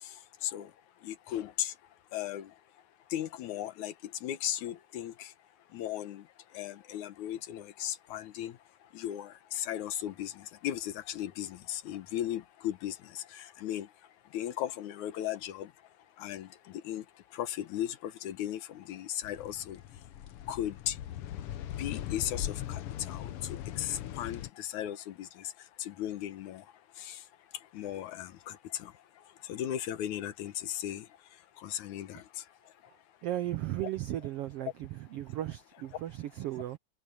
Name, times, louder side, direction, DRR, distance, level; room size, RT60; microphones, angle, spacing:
voice 1, 1.0-1.7 2.1-2.5 3.1-3.9 4.2-5.3 5.7-6.2 6.5-8.5 8.9-13.9 14.3-15.7 16.2-17.0 17.3-19.8 20.5-21.0 21.8-25.5 25.8-26.6 27.0-27.2 27.7-28.9 29.4-31.1 31.6-32.4, left 11 dB, 70° left, 2.4 m, -36 dB
sound 1, 19.2-24.5, left 12 dB, 90° left, 1.2 m, -40 dB
voice 2, 33.2-36.8, right 13 dB, 85° right, 1.3 m, -36 dB
omnidirectional pair, 3.6 m